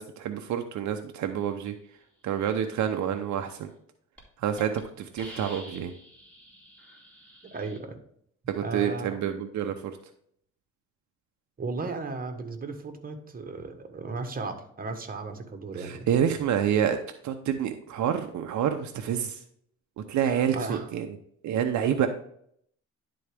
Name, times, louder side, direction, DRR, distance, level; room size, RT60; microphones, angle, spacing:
voice 1, 0.0-1.7 2.2-3.7 4.4-4.7 5.0-5.9 8.5-10.0 15.8-17.0 17.2-19.4 20.1-21.1 21.4-22.1, right 9 dB, 70° right, 6 dB, 0.7 m, -28 dB
Hiss, 3.8-3.9 4.2-4.3 4.6-4.8 5.2-7.8, right 1 dB, 5° left, 2.5 m, -47 dB
voice 2, 7.5-8.0 8.6-9.1 11.6-16.1 20.2-20.9, right 3 dB, 30° right, 5 dB, 1.3 m, -35 dB
11.0 x 3.9 x 3.4 m, 0.67 s
cardioid pair, 90°, 30 cm